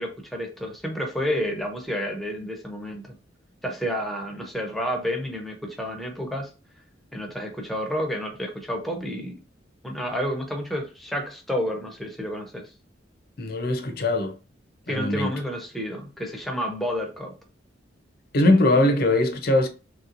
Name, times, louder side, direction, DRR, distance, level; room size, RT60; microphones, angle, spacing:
voice 1, 0.0-3.2 3.6-6.5 7.1-9.4 9.8-12.7 14.9-17.3, equal, ahead, 0.6 m, -30 dB
voice 2, 13.4-14.4 14.9-15.3 18.3-19.7, left 1 dB, 50° left, 0.6 m, -21 dB
3.2 x 2.9 x 2.5 m
head